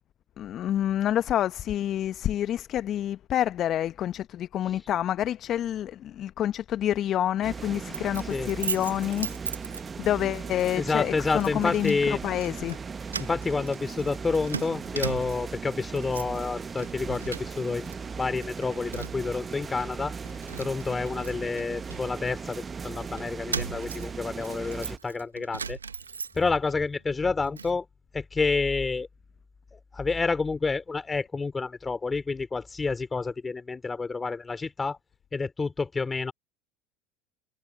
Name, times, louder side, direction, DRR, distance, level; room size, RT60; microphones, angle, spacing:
voice 1, 0.4-9.3 10.0-12.0 12.2-12.8, left 11 dB, 45° left, 0.9 m, -28 dB
sound 1, 7.4-25.0, right 5 dB, 25° right, 1.2 m, -38 dB
Keys jangling, 7.9-10.2 10.6-10.8 11.4-12.0 12.3-12.8 13.1-15.6 15.9-16.4 16.7-17.9 18.2-19.3 19.8-19.9 20.2-22.6 23.2-26.7 27.1-27.8, right 6 dB, 90° right, 1.1 m, -38 dB
voice 2, 10.7-12.2 13.2-20.1 20.6-25.8 26.3-27.8 28.1-29.1 29.7-35.0 35.3-36.3, left 4 dB, 20° left, 2.7 m, -29 dB
hypercardioid pair, 70°, 0 cm